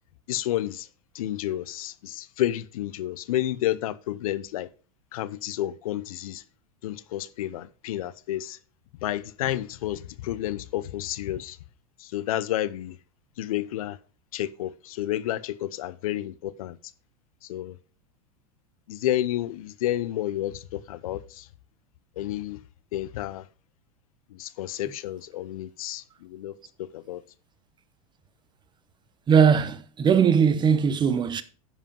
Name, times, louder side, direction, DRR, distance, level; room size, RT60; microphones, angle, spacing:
voice 1, 0.3-0.9 1.1-4.7 5.1-6.4 6.8-8.6 9.0-11.6 12.0-13.0 13.4-14.0 14.3-16.8 17.4-17.8 18.9-21.5 22.2-22.6 22.9-23.5 24.3-27.2, left 13 dB, 75° left, 0.8 m, -30 dB
voice 2, 29.3-31.4, right 7 dB, 25° right, 0.9 m, -20 dB
11.0 x 5.1 x 5.3 m
hypercardioid pair, 105°, 18 cm